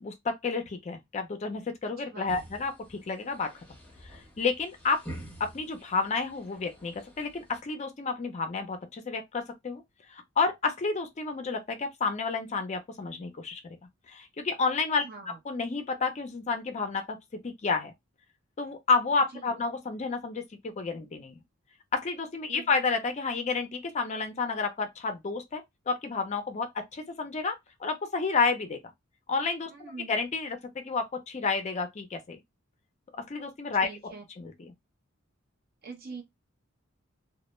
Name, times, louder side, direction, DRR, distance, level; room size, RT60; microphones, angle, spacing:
voice 1, 0.0-3.5 4.1-5.0 5.4-9.8 10.1-13.8 14.1-15.0 15.5-17.2 17.4-17.9 18.6-21.4 21.9-28.8 29.3-29.7 30.1-32.4 33.3-34.7, left 4 dB, 35° left, 0.4 m, -30 dB
sound 1, 2.3-7.6, right 1 dB, 10° left, 0.8 m, -48 dB
voice 2, 15.0-15.4 22.5-22.7 29.7-30.1 33.8-34.2 35.8-36.2, right 4 dB, 50° right, 0.7 m, -43 dB
2.1 x 2.0 x 2.9 m
head